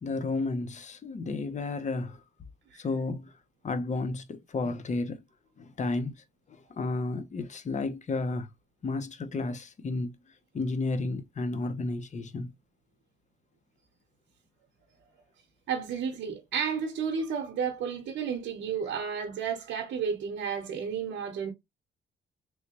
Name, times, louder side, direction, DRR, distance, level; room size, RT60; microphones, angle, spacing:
voice 1, 0.0-2.2 2.7-3.3 3.6-5.2 5.6-6.1 6.5-8.5 8.8-10.1 10.5-12.5, left 3 dB, 35° left, 0.7 m, -32 dB
voice 2, 15.7-21.5, right 6 dB, 70° right, 0.9 m, -32 dB
3.2 x 3.0 x 2.8 m
cardioid pair, 90°, 20 cm